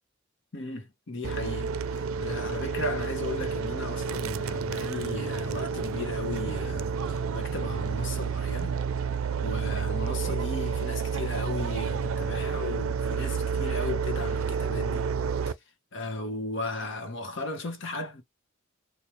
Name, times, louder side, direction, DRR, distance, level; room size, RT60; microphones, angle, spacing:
voice 1, 0.5-8.7 9.4-15.0 15.5-15.6 15.9-18.2, left 2 dB, 60° left, 1.0 m, -36 dB
sound 1, 1.2-15.5, right 6 dB, 85° right, 0.4 m, -30 dB
4.3 x 2.2 x 3.2 m
head